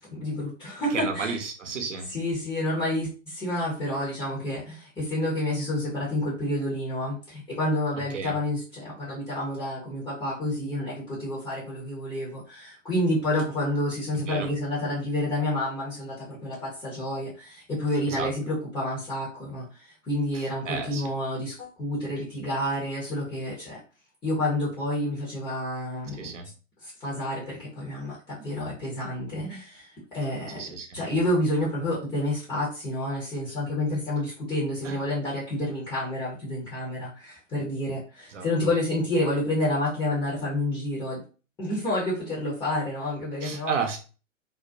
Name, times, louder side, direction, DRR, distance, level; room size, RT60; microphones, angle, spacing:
voice 1, 0.1-1.3 2.1-23.8 24.2-26.3 26.8-30.6 30.9-41.2 41.6-43.7, left 1 dB, 10° left, -6 dB, 0.6 m, -29 dB
voice 2, 0.9-2.1 8.1-8.4 14.1-14.5 18.1-18.3 20.3-21.0 26.1-26.5 30.5-31.0 34.8-35.0 38.3-38.5 43.4-44.0, right 5 dB, 65° right, 4 dB, 0.7 m, -32 dB
2.4 x 2.1 x 2.5 m, 0.35 s
figure-of-eight pair, 110°, 39 cm